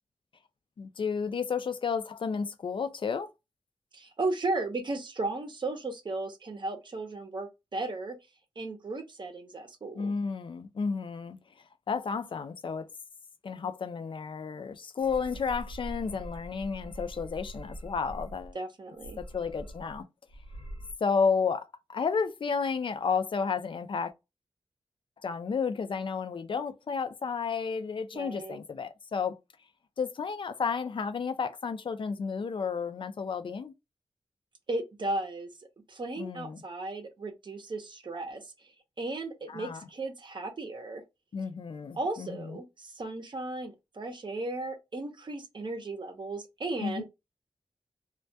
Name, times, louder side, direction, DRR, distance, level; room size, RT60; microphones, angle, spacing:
voice 1, 0.8-3.3 9.9-11.4 11.9-12.9 13.4-18.6 19.2-20.0 21.0-24.1 25.2-29.4 30.0-33.7 36.2-36.6 39.5-39.8 41.3-42.6 46.8-47.0, left 5 dB, 50° left, 0.4 m, -32 dB
voice 2, 3.9-8.2 8.6-10.1 18.5-19.2 28.1-28.6 34.7-35.5 35.9-38.7 39.0-41.0 41.9-47.0, right 2 dB, 45° right, 0.6 m, -35 dB
sound 1, 15.0-18.5 19.0-20.0 20.3-20.9, right 1 dB, 85° left, 1.0 m, -43 dB
2.2 x 2.1 x 2.6 m
wide cardioid pair, 105°, 11 cm